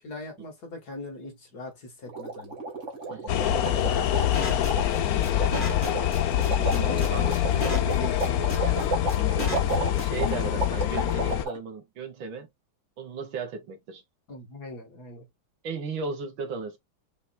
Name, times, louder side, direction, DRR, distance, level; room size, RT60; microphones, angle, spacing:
voice 1, 0.0-2.6 3.0-4.2 9.6-9.9 14.3-15.3, left 2 dB, 50° left, 2.0 m, -42 dB
sound 1, 2.1-11.6, right 3 dB, 40° right, 1.5 m, -33 dB
sound 2, 3.3-11.5, left 11 dB, 80° left, 0.8 m, -25 dB
sound 3, 4.3-10.3, left 1 dB, 25° left, 1.4 m, -33 dB
voice 2, 6.6-8.8 10.0-12.5 13.0-14.0 15.6-16.8, right 5 dB, 70° right, 1.9 m, -36 dB
5.8 x 3.1 x 2.3 m
omnidirectional pair, 2.3 m